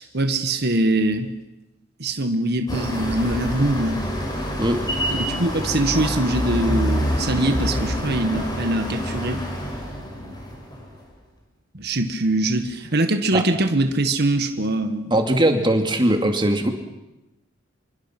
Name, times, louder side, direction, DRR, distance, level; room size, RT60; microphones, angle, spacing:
voice 1, 0.0-1.3 2.0-4.0 5.1-9.4 11.7-15.1, right 2 dB, 55° right, 7 dB, 1.7 m, -23 dB
sound 1, 2.7-11.0, equal, 20° left, 6.0 m, -27 dB
voice 2, 15.1-16.7, right 1 dB, 25° right, 4 dB, 2.5 m, -20 dB
27.0 x 23.5 x 6.1 m, 0.99 s
head